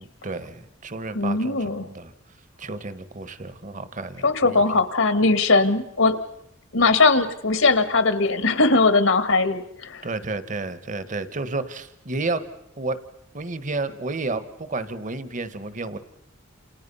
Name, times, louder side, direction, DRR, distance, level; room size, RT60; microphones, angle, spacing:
voice 1, 0.0-2.1 2.6-4.6 10.0-12.4 12.8-13.0 13.3-16.0, right 3 dB, 40° right, 12 dB, 1.3 m, -31 dB
voice 2, 1.1-1.9 4.2-6.2 6.7-10.1, left 3 dB, 75° left, 10 dB, 1.9 m, -20 dB
28.5 x 28.5 x 5.6 m, 0.81 s
head